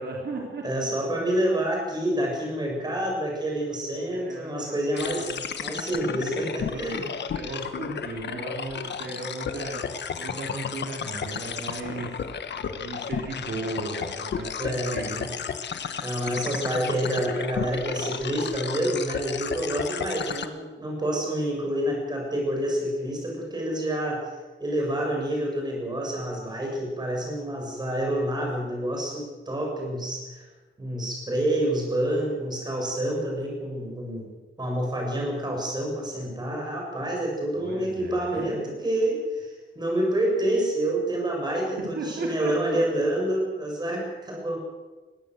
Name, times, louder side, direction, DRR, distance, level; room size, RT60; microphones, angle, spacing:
voice 1, 0.0-0.6 4.1-5.4 6.6-9.8 10.2-12.2 12.6-15.4 16.2-16.9 37.5-38.7 41.8-42.5 44.2-44.3, right 2 dB, 55° right, -1 dB, 3.7 m, -36 dB
voice 2, 0.6-5.3 5.6-7.0 14.6-15.3 16.0-24.2 24.6-30.5 30.8-34.3 34.6-44.6, right 1 dB, 20° right, -1 dB, 7.1 m, -28 dB
sound 1, 5.0-20.5, left 7 dB, 60° left, 1.3 m, -33 dB
21.5 x 16.0 x 7.9 m, 1.2 s
wide cardioid pair, 170°, 20 cm